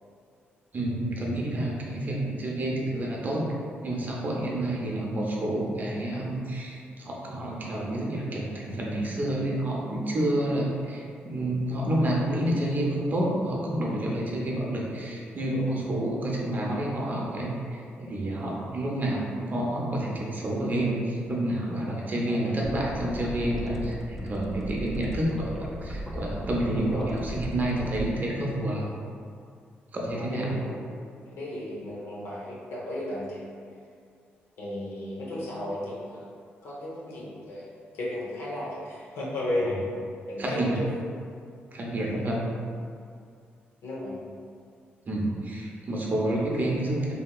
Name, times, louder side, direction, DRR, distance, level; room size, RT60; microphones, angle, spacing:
voice 1, 0.7-3.4 3.8-28.8 29.9-30.5 40.4-40.8 41.7-42.5 45.0-47.1, right 1 dB, 45° right, -3 dB, 0.6 m, -29 dB
sound 1, 22.6-28.0, equal, 5° left, 0.4 m, -37 dB
voice 2, 30.1-30.8 31.3-33.4 34.6-36.2 36.6-39.8 40.3-40.8 43.8-44.2, left 1 dB, 85° left, -6 dB, 0.8 m, -34 dB
2.8 x 2.7 x 2.3 m, 2.3 s
cardioid pair, 75°, 4 cm